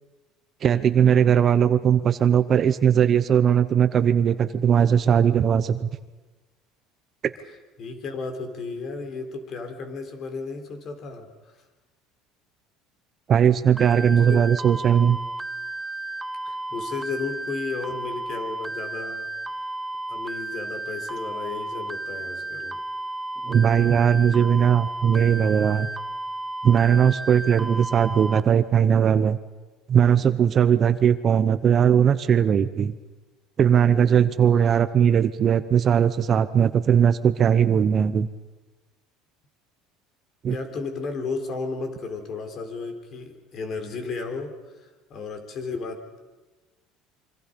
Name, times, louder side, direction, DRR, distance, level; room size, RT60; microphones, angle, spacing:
voice 1, 0.6-5.9 13.3-15.2 23.4-25.9 26.6-29.4 29.9-32.9 33.6-38.3 40.4-40.6, right 8 dB, 35° right, 13 dB, 0.8 m, -19 dB
voice 2, 7.8-11.3 14.1-14.4 16.4-19.3 20.1-22.8 40.5-46.0, left 4 dB, 40° left, 6 dB, 3.8 m, -33 dB
sound 1, 13.8-28.4, right 2 dB, 5° right, 0.9 m, -33 dB
27.0 x 25.0 x 5.3 m, 1.2 s
cardioid pair, 145°, 0 cm